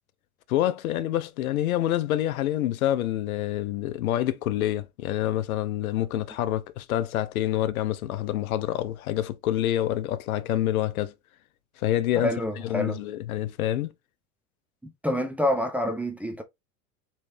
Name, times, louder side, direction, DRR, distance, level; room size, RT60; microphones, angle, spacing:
voice 1, 0.5-11.1 11.8-12.3 12.6-13.9, left 13 dB, 80° left, 0.5 m, -27 dB
voice 2, 12.2-13.0 14.8-16.4, left 1 dB, 5° right, 0.4 m, -27 dB
3.1 x 3.1 x 2.7 m
hypercardioid pair, 85°, 42 cm